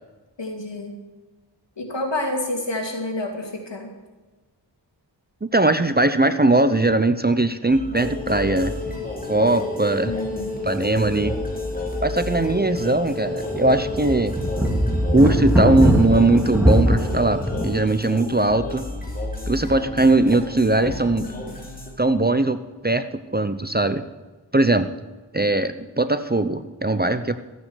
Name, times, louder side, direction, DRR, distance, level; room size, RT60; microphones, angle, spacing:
voice 1, 0.4-0.9 1.8-3.9 10.0-10.7 21.1-21.5, left 1 dB, 70° left, 1 dB, 2.7 m, -29 dB
voice 2, 5.4-8.7 9.3-10.1 10.6-11.3 12.0-14.3 15.1-18.9 19.5-21.3 22.0-22.6 22.8-24.1 24.5-24.9 25.3-27.4, right 2 dB, 20° right, 11 dB, 0.6 m, -20 dB
sound 1, 7.7-21.9, left 2 dB, 20° left, 3.2 m, -31 dB
sound 2, 9.1-9.3 9.6-9.7 10.6-12.1 12.4-12.5 13.1-17.8, equal, 5° right, 2.3 m, -22 dB
14.0 x 8.9 x 6.3 m, 1.2 s
wide cardioid pair, 55°, 45 cm